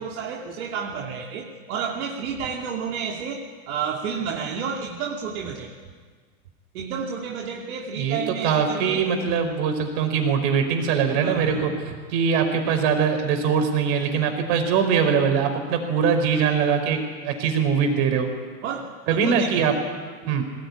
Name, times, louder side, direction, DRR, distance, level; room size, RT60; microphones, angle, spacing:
voice 1, 0.0-5.7 6.7-9.1 11.2-12.0 14.4-14.5 17.3-17.5 18.6-19.7 20.2-20.4, right 6 dB, 70° right, 0 dB, 2.7 m, -31 dB
voice 2, 8.4-11.7 12.1-17.0 17.2-18.3 19.1-19.7 20.3-20.4, right 6 dB, 45° right, 6 dB, 5.1 m, -22 dB
22.0 x 18.5 x 9.9 m, 1.5 s
supercardioid pair, 145°, 45 cm